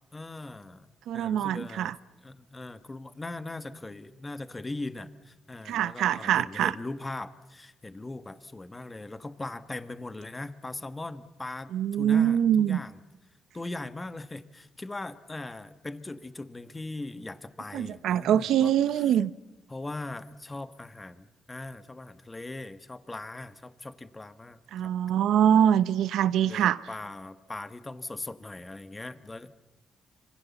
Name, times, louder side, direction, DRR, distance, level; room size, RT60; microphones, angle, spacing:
voice 1, 0.1-0.9 1.1-1.9 2.2-13.0 13.5-19.1 19.7-24.9 26.5-29.5, left 2 dB, 20° left, 1.5 m, -40 dB
voice 2, 1.1-2.0 5.6-6.7 11.7-12.8 17.7-19.3 24.7-26.8, right 10 dB, 90° right, 1.0 m, -24 dB
26.5 x 26.0 x 7.2 m
cardioid pair, 100°, 0 cm